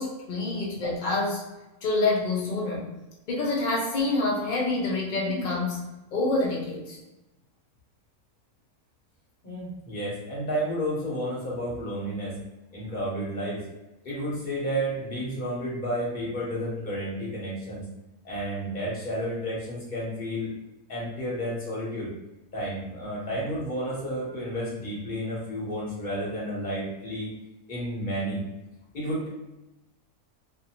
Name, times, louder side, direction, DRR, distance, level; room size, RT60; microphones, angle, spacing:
voice 1, 0.0-1.4 1.8-2.9 3.3-5.9 6.1-7.0, left 2 dB, 85° left, -3 dB, 0.4 m, -27 dB
voice 2, 9.4-12.4 12.7-13.6 14.0-17.8 18.2-20.5 20.9-22.1 22.5-27.3 27.7-28.4 28.9-29.3, equal, 35° left, -6 dB, 1.0 m, -31 dB
2.6 x 2.5 x 2.9 m, 0.99 s
omnidirectional pair, 1.6 m